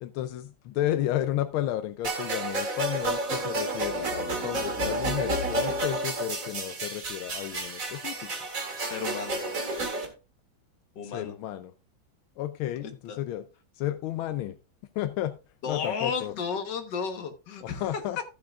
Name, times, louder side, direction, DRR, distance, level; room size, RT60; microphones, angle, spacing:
voice 1, 0.0-8.3 11.1-11.7 12.4-13.4 13.8-14.5 14.9-15.3 15.7-16.3 17.6-18.2, left 13 dB, 85° left, 11 dB, 1.4 m, -32 dB
sound 1, 2.0-10.1, right 2 dB, 45° right, 2.2 m, -31 dB
voice 2, 8.8-9.4 11.0-11.3 12.8-13.2 15.6-18.2, left 6 dB, 60° left, 6 dB, 1.8 m, -33 dB
14.0 x 7.6 x 2.4 m, 0.32 s
omnidirectional pair, 2.2 m